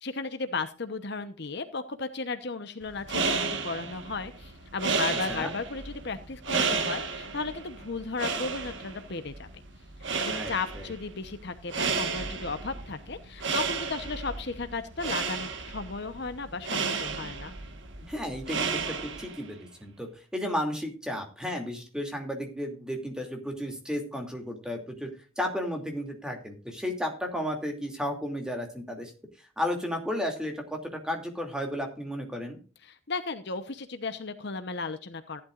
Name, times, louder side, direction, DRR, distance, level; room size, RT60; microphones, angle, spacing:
voice 1, 0.0-9.5 10.2-17.5 32.8-35.4, left 4 dB, 55° left, 10 dB, 1.0 m, -35 dB
sound 1, 2.9-19.5, right 5 dB, 60° right, 1.5 m, -33 dB
voice 2, 10.3-10.9 18.1-25.1 25.4-29.1 29.6-32.6, equal, 5° right, 3 dB, 2.6 m, -33 dB
15.5 x 11.5 x 2.5 m, 0.35 s
head